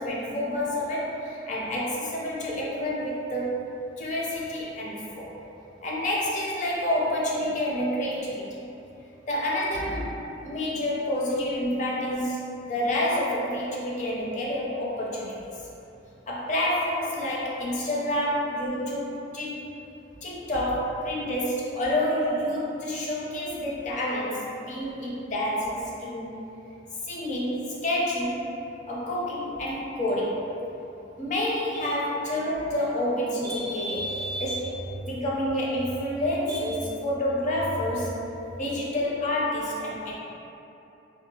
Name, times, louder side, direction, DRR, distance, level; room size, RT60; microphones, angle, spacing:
voice 1, 0.0-3.6 4.0-5.3 5.8-8.6 9.3-12.4 12.6-15.6 16.3-19.6 20.2-26.4 27.1-28.6 28.9-30.4 31.2-34.1 34.4-34.6 35.0-38.3 38.6-40.1, left 1 dB, 45° left, -5 dB, 0.5 m, -28 dB
voice 2, 33.4-35.1 36.5-36.7 39.9-40.1, right 1 dB, 25° right, -8 dB, 0.4 m, -35 dB
2.7 x 2.4 x 2.7 m, 2.9 s
head